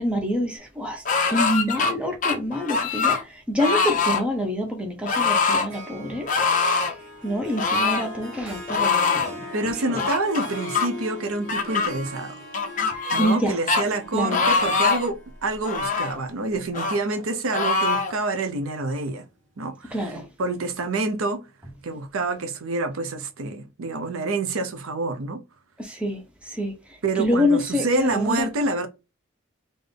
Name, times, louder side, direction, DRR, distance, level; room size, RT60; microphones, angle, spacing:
voice 1, 0.0-3.2 3.5-6.3 7.2-9.5 9.9-10.0 13.2-13.6 14.1-14.5 19.9-20.2 25.8-26.2 26.5-26.7 27.2-28.5, left 1 dB, 5° right, 0.8 m, -26 dB
sound 1, 1.1-1.9 2.2-3.2 3.6-4.2 5.1-5.7 6.3-6.9 7.6-8.1 8.7-9.3 10.0-10.9 11.5-11.9 12.5-13.4 13.7-13.8 14.3-15.1 15.6-16.2 16.7-17.0 17.5-18.1, left 4 dB, 35° left, 0.6 m, -23 dB
Harp, 5.7-17.1, equal, 60° right, 1.0 m, -40 dB
voice 2, 9.5-12.4 13.1-19.2 19.6-20.0 20.4-21.4 21.8-25.4 27.0-28.9, right 3 dB, 85° right, 0.7 m, -27 dB
3.7 x 2.6 x 3.4 m
head